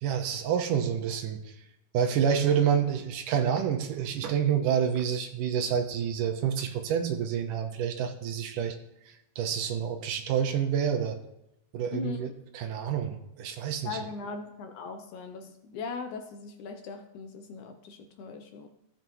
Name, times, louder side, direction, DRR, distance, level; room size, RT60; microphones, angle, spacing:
voice 1, 0.0-1.5 1.9-8.8 9.1-11.2 11.7-14.0, right 8 dB, 75° right, 6 dB, 2.3 m, -28 dB
voice 2, 11.9-12.3 13.8-18.7, left 4 dB, 70° left, 6 dB, 2.1 m, -39 dB
15.5 x 7.9 x 3.1 m, 0.86 s
omnidirectional pair, 4.0 m